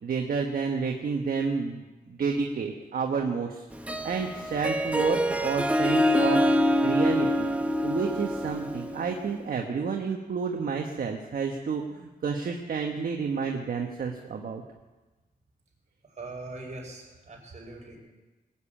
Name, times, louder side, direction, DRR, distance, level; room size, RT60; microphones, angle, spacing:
voice 1, 0.0-3.6 4.0-7.5 7.8-14.6, right 5 dB, 65° right, 2 dB, 1.3 m, -30 dB
Harp, 3.7-9.3, equal, 10° right, 1.1 m, -25 dB
voice 2, 16.0-18.0, right 2 dB, 50° right, -1 dB, 5.1 m, -42 dB
20.0 x 7.3 x 8.8 m, 1.2 s
cardioid pair, 95°, 16 cm